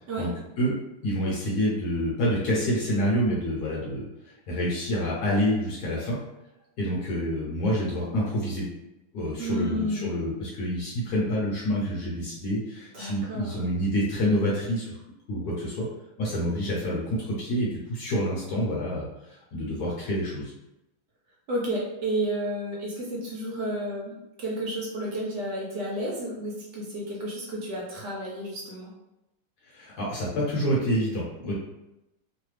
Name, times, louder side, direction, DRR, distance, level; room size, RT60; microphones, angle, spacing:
voice 1, 1.0-4.1 4.5-6.2 6.8-8.6 9.1-15.0 15.3-15.9 16.2-19.1 19.5-20.5 29.7-31.5, equal, 65° left, -5 dB, 1.1 m, -27 dB
voice 2, 9.4-10.1 12.9-13.5 21.5-24.1 24.4-28.9, right 1 dB, 70° right, -4 dB, 1.2 m, -31 dB
3.2 x 2.2 x 3.2 m, 0.94 s
omnidirectional pair, 2.2 m